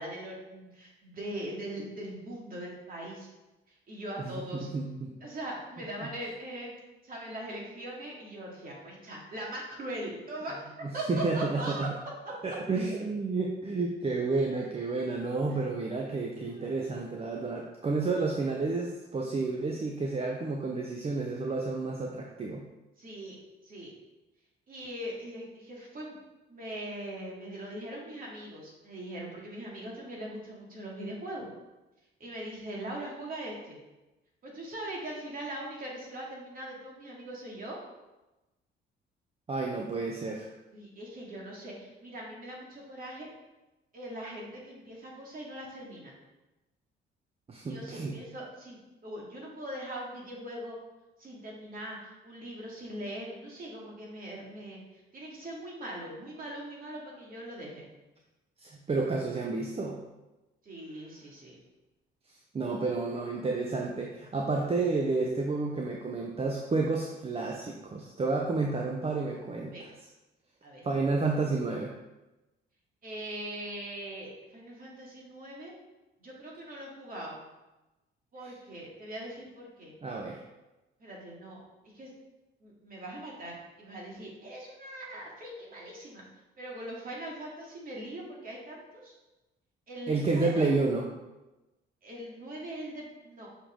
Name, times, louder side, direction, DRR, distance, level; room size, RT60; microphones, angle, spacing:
voice 1, 0.0-3.3 3.7-4.7 5.2-6.7 7.0-11.9 15.5-15.6 16.5-16.9 23.0-23.4 23.6-23.9 24.7-26.1 26.5-31.5 32.2-33.8 34.4-37.8 40.7-43.3 43.9-46.1 47.6-50.8 51.2-57.9 60.6-61.6 69.7-69.9 70.6-70.8 73.0-75.7 76.2-77.4 78.3-79.9 81.0-81.6 81.9-82.1 82.6-86.2 86.6-89.1 89.9-90.7 92.0-93.5, right 1 dB, 45° right, -3 dB, 2.4 m, -41 dB
voice 2, 4.2-5.1 10.8-11.9 12.4-22.6 39.5-40.5 47.5-48.1 58.6-60.0 62.5-69.7 70.8-71.9 78.4-78.5 80.0-80.4 90.1-91.1, right 3 dB, 30° right, 0 dB, 0.8 m, -30 dB
6.5 x 5.0 x 3.8 m, 1.0 s
cardioid pair, 90°, 20 cm